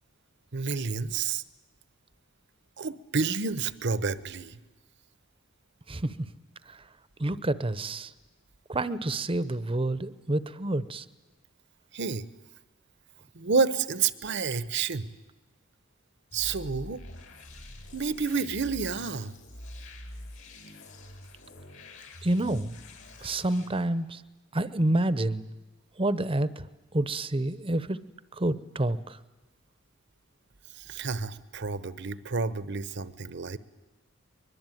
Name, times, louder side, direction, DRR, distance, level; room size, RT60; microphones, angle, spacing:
voice 1, 0.5-1.4 2.8-4.6 11.9-12.3 13.3-15.1 16.3-17.0 17.9-19.3 30.7-33.6, right 5 dB, 55° right, 15 dB, 0.9 m, -29 dB
voice 2, 7.2-8.1 8.7-11.0 22.2-22.8 23.2-24.2 24.5-25.5 26.0-26.7 26.9-28.0 28.3-29.2, right 1 dB, 25° right, 15 dB, 0.8 m, -28 dB
sound 1, 16.3-23.7, left 1 dB, 65° left, 5.0 m, -45 dB
23.5 x 22.0 x 9.2 m, 1.1 s
head